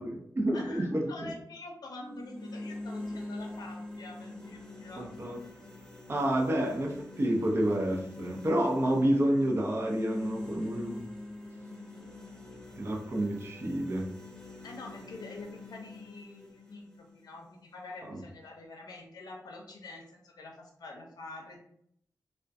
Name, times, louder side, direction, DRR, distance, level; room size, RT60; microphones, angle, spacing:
voice 1, 0.0-1.3 5.0-5.4 6.1-11.0 12.8-14.1 18.0-18.2, right 1 dB, 35° right, 0 dB, 0.5 m, -29 dB
voice 2, 0.5-5.1 14.6-21.6, left 2 dB, 80° left, 1 dB, 0.5 m, -46 dB
sound 1, 2.0-18.1, left 2 dB, 5° left, 0.6 m, -45 dB
2.3 x 2.1 x 2.6 m, 0.69 s
wide cardioid pair, 95°, 7 cm